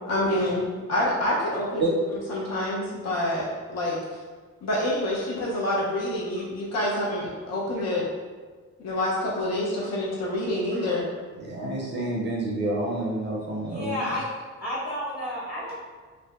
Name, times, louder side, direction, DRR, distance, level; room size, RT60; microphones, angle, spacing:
voice 1, 0.0-1.8 2.3-4.2 4.6-8.0 8.8-11.1, left 1 dB, 60° left, -5 dB, 0.6 m, -27 dB
voice 2, 11.4-14.2, right 2 dB, 35° right, -2 dB, 0.5 m, -29 dB
voice 3, 13.6-14.2 14.6-15.7, left 1 dB, 30° left, -9 dB, 1.4 m, -31 dB
2.6 x 2.0 x 2.3 m, 1.4 s
cardioid pair, 90°, 30 cm